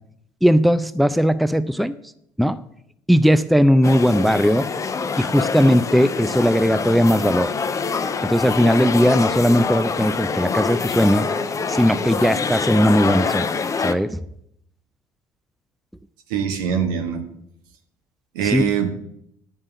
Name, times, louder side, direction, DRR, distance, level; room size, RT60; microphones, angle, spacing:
voice 1, 0.4-1.9 2.4-2.6 3.1-4.7 5.2-7.5 8.2-11.3 11.7-13.5 13.8-14.2 18.5-18.7, equal, ahead, 14 dB, 0.5 m, -18 dB
sound 1, 3.8-13.9, left 5 dB, 30° left, 0.7 m, -25 dB
voice 2, 16.3-17.2 18.3-18.9, right 7 dB, 75° right, 6 dB, 1.4 m, -22 dB
9.8 x 5.4 x 7.0 m, 0.73 s
hypercardioid pair, 60°, 11 cm